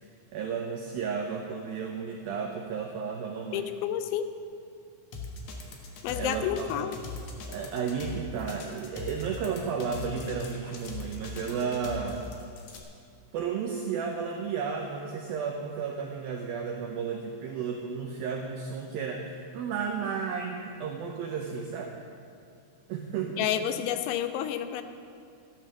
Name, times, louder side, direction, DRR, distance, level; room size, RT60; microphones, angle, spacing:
voice 1, 0.0-3.7 6.2-6.7 7.5-12.2 13.3-21.9 22.9-23.5, right 6 dB, 85° right, 2 dB, 2.1 m, -33 dB
voice 2, 3.5-4.3 6.0-7.0 23.4-24.8, left 10 dB, 85° left, 10 dB, 3.0 m, -30 dB
sound 1, 5.1-12.8, left 3 dB, 65° left, 2.0 m, -40 dB
13.5 x 10.5 x 6.4 m, 2.4 s
omnidirectional pair, 5.3 m